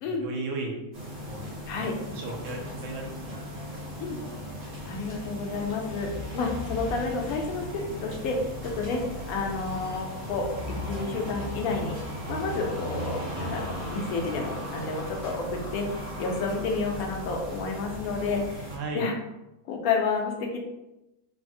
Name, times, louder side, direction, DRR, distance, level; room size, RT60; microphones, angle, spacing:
voice 1, 0.0-0.7 1.2-4.2 18.7-19.1, right 2 dB, 65° right, 0 dB, 0.9 m, -37 dB
sound 1, 0.9-18.8, equal, 45° right, 0.9 m, -37 dB
voice 2, 4.8-12.0 12.3-19.1 19.6-20.6, left 4 dB, 75° left, 2 dB, 1.0 m, -30 dB
3.3 x 2.0 x 2.6 m, 0.95 s
omnidirectional pair, 1.5 m